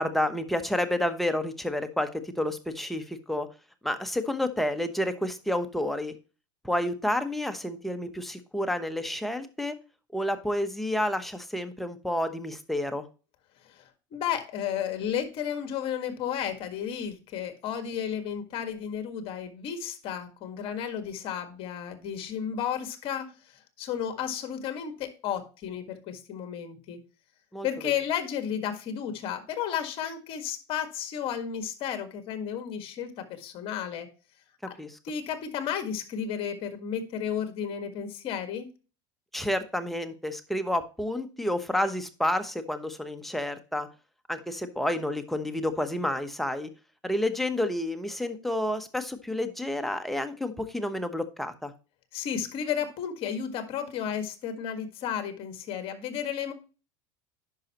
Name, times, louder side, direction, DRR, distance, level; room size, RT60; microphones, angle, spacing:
voice 1, 0.0-3.5 3.8-6.1 6.6-9.7 10.1-13.1 27.5-27.9 34.8-35.0 39.3-43.9 44.3-46.7 47.0-51.7, left 1 dB, ahead, 7 dB, 1.0 m, -30 dB
voice 2, 13.6-27.0 27.6-34.1 34.6-34.8 35.0-38.7 52.1-56.5, left 8 dB, 50° left, 8 dB, 1.7 m, -33 dB
10.5 x 5.6 x 3.0 m, 0.33 s
supercardioid pair, 120°, 12 cm